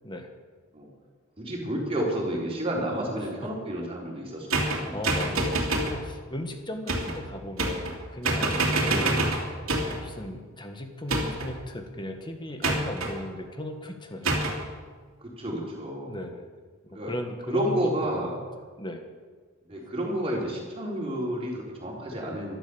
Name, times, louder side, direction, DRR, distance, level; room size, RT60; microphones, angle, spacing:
voice 1, 1.4-4.9 5.2-5.3 8.9-9.2 15.2-16.2 16.9-17.1 17.5-18.4 19.7-22.6, equal, 30° right, -3 dB, 4.2 m, -31 dB
sound 1, 4.5-6.0 6.9-7.2 7.6-8.0 8.2-10.0 11.1-11.6 12.6-13.1 14.3-14.6, right 2 dB, 85° right, 2.8 m, -26 dB
voice 2, 4.9-9.2 10.0-14.4 16.1-16.5 16.8-18.3 18.8-19.0 19.7-19.9, left 1 dB, 20° left, 5 dB, 1.6 m, -37 dB
13.5 x 12.0 x 7.1 m, 1.5 s
head